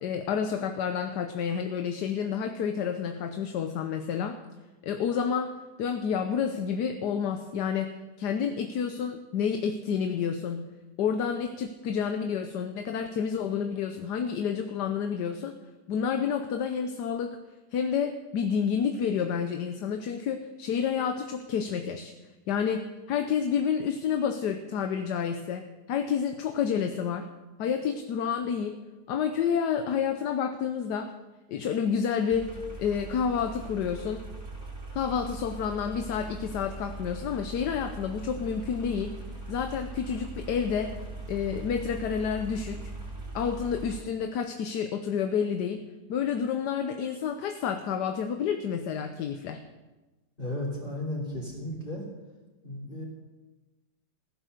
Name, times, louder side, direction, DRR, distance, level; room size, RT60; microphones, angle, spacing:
voice 1, 0.0-4.4 4.8-5.5 5.8-10.6 11.0-15.6 15.9-17.4 17.7-22.1 22.5-27.3 27.6-28.8 29.1-31.1 31.5-34.3 34.9-39.2 39.5-40.9 41.3-42.9 43.3-45.8 46.1-49.6, left 7 dB, 75° left, 7 dB, 1.4 m, -29 dB
sound 1, 32.3-44.0, right 3 dB, 15° right, 3.7 m, -40 dB
voice 2, 50.4-52.0 52.6-53.0, left 1 dB, 30° left, -2 dB, 3.1 m, -34 dB
15.0 x 11.0 x 6.6 m, 1.1 s
omnidirectional pair, 1.9 m